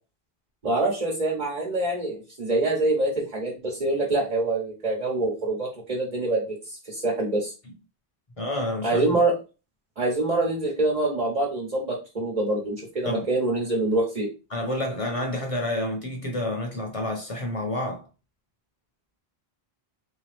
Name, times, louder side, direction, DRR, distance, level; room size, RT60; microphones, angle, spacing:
voice 1, 0.6-7.5 8.8-9.3 10.0-14.3, right 2 dB, 45° right, 1.2 m, -25 dB
voice 2, 8.4-9.1 13.0-13.2 14.5-18.1, left 1 dB, 35° left, 0.8 m, -29 dB
3.7 x 2.8 x 3.3 m
omnidirectional pair, 1.0 m